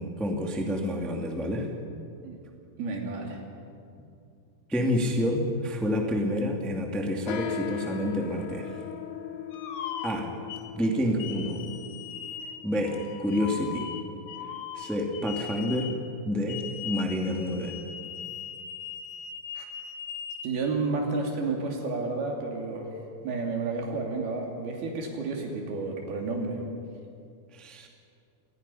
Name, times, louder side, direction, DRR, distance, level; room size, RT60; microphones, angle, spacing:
voice 1, 0.0-1.7 4.7-8.8 10.0-10.3 10.7-11.6 12.6-13.9 14.7-15.9 16.2-17.7 27.5-27.9, equal, ahead, 1 dB, 1.0 m, -28 dB
voice 2, 2.8-3.4 19.6-19.7 20.4-22.9 23.2-26.6, right 3 dB, 80° right, 1 dB, 4.6 m, -31 dB
sound 1, 7.3-15.0, left 10 dB, 85° left, 3.0 m, -40 dB
sound 2, 9.5-10.7 11.2-16.0 16.5-20.5, left 8 dB, 65° left, 2.0 m, -39 dB
27.0 x 19.5 x 5.7 m, 2.5 s
omnidirectional pair, 4.4 m